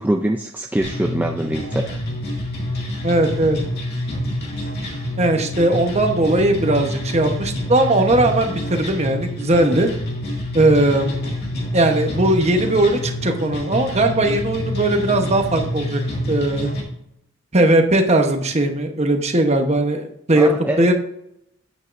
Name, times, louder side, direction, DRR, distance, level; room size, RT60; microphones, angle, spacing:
voice 1, 0.0-2.0 20.3-20.9, right 1 dB, 10° right, 3 dB, 0.3 m, -23 dB
sound 1, 0.8-16.8, left 1 dB, 50° left, 2.1 m, -27 dB
voice 2, 3.0-3.6 5.2-9.9 10.5-11.1 11.7-16.0 16.3-16.7 17.5-20.5 20.8-20.9, right 1 dB, 30° right, 5 dB, 1.0 m, -18 dB
9.5 x 8.3 x 2.6 m, 0.77 s
head